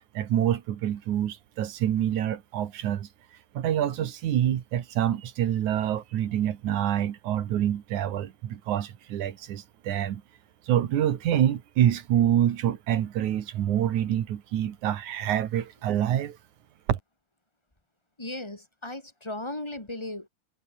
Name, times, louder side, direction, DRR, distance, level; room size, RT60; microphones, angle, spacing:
voice 1, 0.1-3.1 3.5-10.2 10.7-16.4 16.9-17.0, right 11 dB, 65° right, 2.9 m, -26 dB
voice 2, 18.2-20.3, left 1 dB, 10° left, 2.6 m, -36 dB
omnidirectional pair, 3.8 m